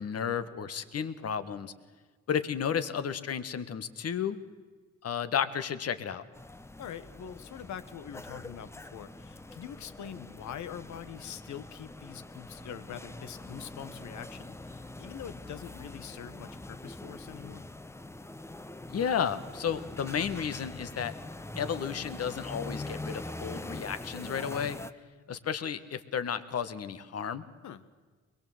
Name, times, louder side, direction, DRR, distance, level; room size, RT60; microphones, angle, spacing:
voice 1, 0.0-1.7 2.3-4.4 5.0-6.2 18.9-21.1 21.5-24.8 25.3-27.5, left 7 dB, 55° left, 11 dB, 1.6 m, -32 dB
sound 1, 6.3-24.9, left 2 dB, 10° left, 0.8 m, -43 dB
voice 2, 6.8-17.7 27.6-27.8, left 9 dB, 70° left, 12 dB, 1.5 m, -44 dB
23.5 x 21.5 x 8.0 m, 1.4 s
cardioid pair, 90°, 30 cm